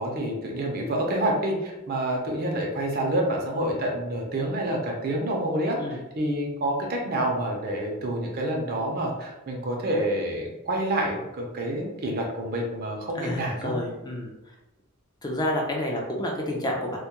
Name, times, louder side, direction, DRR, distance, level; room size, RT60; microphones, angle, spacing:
voice 1, 0.0-13.7, right 1 dB, 45° right, 0 dB, 0.5 m, -28 dB
voice 2, 13.2-14.3 15.2-17.0, left 1 dB, 20° left, 0 dB, 0.4 m, -29 dB
2.2 x 2.1 x 2.8 m, 0.98 s
head